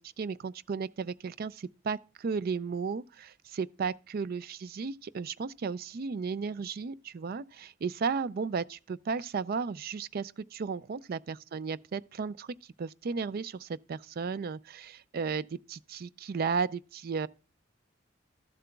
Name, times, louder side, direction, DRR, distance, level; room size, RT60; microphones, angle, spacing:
voice 1, 0.0-17.3, right 5 dB, 50° right, 0.4 m, -34 dB
13.0 x 7.5 x 2.3 m
head